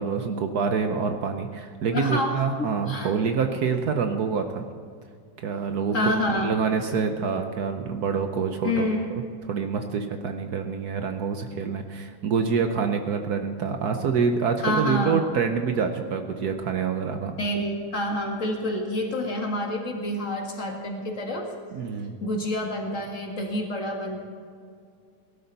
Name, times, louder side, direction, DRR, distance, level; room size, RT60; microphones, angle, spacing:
voice 1, 0.0-4.6 5.4-6.2 6.4-8.9 9.4-17.3 21.7-22.2, right 6 dB, 60° right, 6 dB, 1.3 m, -26 dB
voice 2, 1.9-3.1 5.9-6.5 8.6-9.1 14.6-15.2 17.4-21.5 22.2-24.2, left 1 dB, 40° left, 1 dB, 2.0 m, -28 dB
18.0 x 12.5 x 4.1 m, 2.2 s
omnidirectional pair, 2.0 m